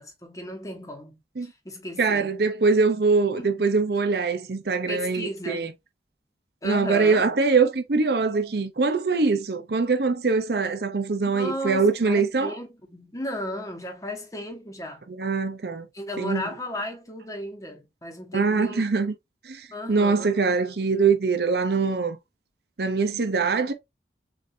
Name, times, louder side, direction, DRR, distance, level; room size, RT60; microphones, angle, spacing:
voice 1, 0.0-2.3 3.4-3.7 4.9-5.8 6.6-7.2 11.2-15.0 15.9-18.8 19.7-20.4, left 1 dB, 20° left, 1.0 m, -35 dB
voice 2, 2.0-5.7 6.6-12.5 15.2-15.9 16.2-16.4 18.3-19.1 19.5-22.2 22.8-23.7, right 4 dB, 60° right, 0.6 m, -23 dB
6.9 x 2.6 x 2.6 m
head